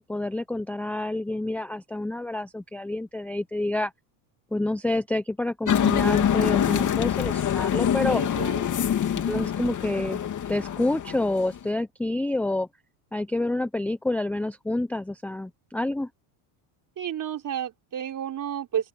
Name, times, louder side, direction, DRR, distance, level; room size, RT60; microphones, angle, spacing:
voice 1, 0.0-3.9 4.5-8.2 9.0-10.2 10.5-12.7 13.1-16.1, left 2 dB, 5° left, 0.6 m, -28 dB
sound 1, 5.7-11.6, left 9 dB, 40° left, 2.9 m, -25 dB
voice 2, 8.0-8.7 17.0-18.9, right 9 dB, 40° right, 3.8 m, -32 dB
open air
supercardioid pair, 105°, 48 cm